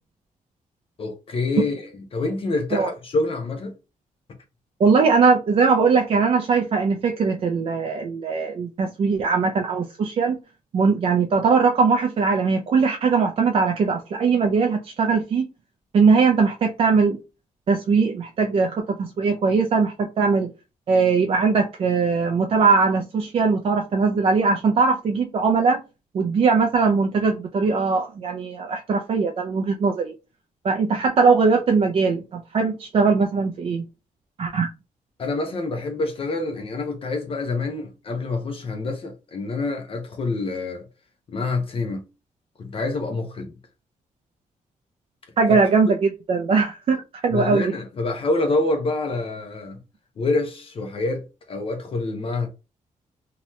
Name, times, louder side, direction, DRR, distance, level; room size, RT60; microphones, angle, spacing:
voice 1, 1.0-3.7 35.2-40.9 41.3-42.0 42.6-43.5 45.5-45.6 47.3-49.8 50.2-52.5, left 2 dB, 40° left, 0.6 m, -26 dB
voice 2, 4.8-10.4 10.7-15.5 15.9-17.2 17.7-20.5 20.9-25.8 26.1-30.1 30.6-33.8 34.4-34.7 45.4-47.7, right 4 dB, 45° right, 0.4 m, -20 dB
2.8 x 2.2 x 3.0 m
wide cardioid pair, 145°, 14 cm